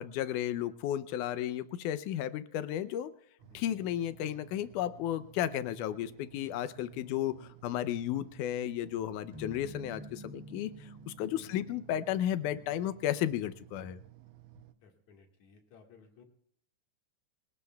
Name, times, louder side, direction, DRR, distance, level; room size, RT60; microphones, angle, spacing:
voice 1, 0.0-3.1 3.5-10.7 11.1-14.0, left 11 dB, 85° left, 13 dB, 2.2 m, -33 dB
sound 1, 3.4-14.7, right 16 dB, 75° right, 2.1 m, -56 dB
sound 2, 9.3-13.7, equal, 25° right, 0.8 m, -50 dB
voice 2, 14.8-16.3, left 5 dB, 65° left, 2 dB, 3.0 m, -59 dB
26.5 x 18.5 x 2.3 m, 0.64 s
omnidirectional pair, 3.5 m